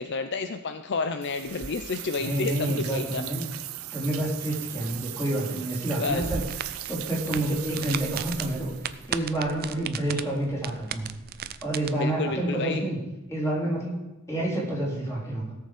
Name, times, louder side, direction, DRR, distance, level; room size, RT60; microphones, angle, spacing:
voice 1, 0.0-3.2 6.0-6.3 12.0-12.9, left 4 dB, 55° left, 9 dB, 0.6 m, -30 dB
sound 1, 1.2-9.1, right 13 dB, 85° right, 0.6 m, -38 dB
voice 2, 2.2-3.5 3.9-6.4 6.7-8.7 9.1-11.1 11.4-13.0 13.3-14.0 14.3-15.5, right 1 dB, 15° left, -5 dB, 4.5 m, -29 dB
sound 2, 6.1-11.9, right 7 dB, 45° right, 0.5 m, -36 dB
17.0 x 6.8 x 5.1 m, 1.1 s
head